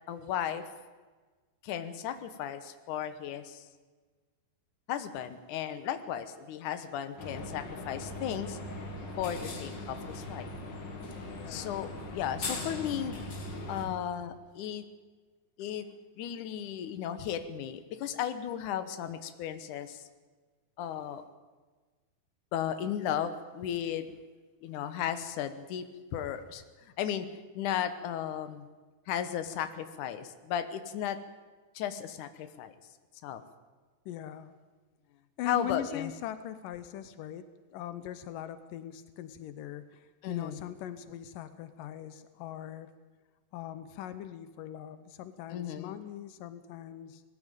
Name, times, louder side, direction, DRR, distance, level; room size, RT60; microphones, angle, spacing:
voice 1, 0.1-0.6 1.6-3.7 4.9-8.6 9.2-10.5 11.5-13.2 13.7-14.8 15.6-15.9 16.2-20.1 20.8-21.2 22.5-24.1 24.6-28.7 29.1-31.2 31.8-32.7 33.2-33.4 35.5-36.1 40.2-40.6 45.5-46.0, left 9 dB, 70° left, 10 dB, 2.0 m, -35 dB
sound 1, 7.2-13.9, left 2 dB, 40° left, 1.9 m, -40 dB
voice 2, 11.3-11.8 13.9-14.3 34.1-34.6 35.4-42.9 43.5-47.2, left 11 dB, 90° left, 12 dB, 1.9 m, -41 dB
20.5 x 15.0 x 9.1 m, 1.4 s
omnidirectional pair, 4.9 m